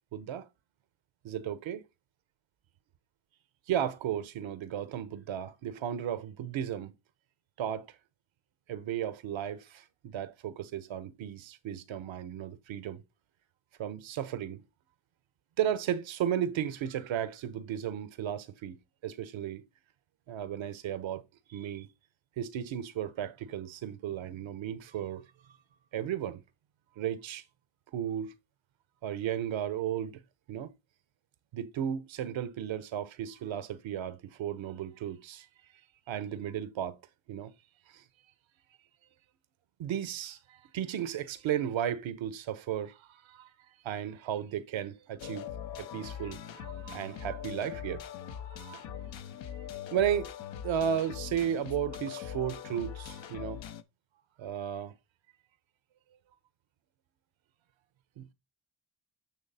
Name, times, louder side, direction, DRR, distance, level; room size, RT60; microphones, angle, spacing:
voice 1, 0.1-0.5 1.2-1.8 3.7-6.9 7.6-7.9 8.7-13.0 13.8-14.6 15.6-18.8 19.0-19.6 20.3-21.2 21.5-21.9 22.4-25.3 25.9-26.4 27.0-27.4 27.9-28.3 29.0-30.2 30.5-30.7 31.5-35.5 36.1-37.0 37.3-37.5 37.9-38.0 39.8-43.5 43.8-45.5 45.7-48.0 48.3-48.9 49.9-50.3 50.6-53.6 54.4-54.9 58.2-58.3, right 9 dB, 75° right, 1.0 m, -34 dB
sound 1, 45.2-53.8, left 9 dB, 70° left, 0.9 m, -41 dB
8.8 x 3.2 x 4.2 m
supercardioid pair, 55°, 47 cm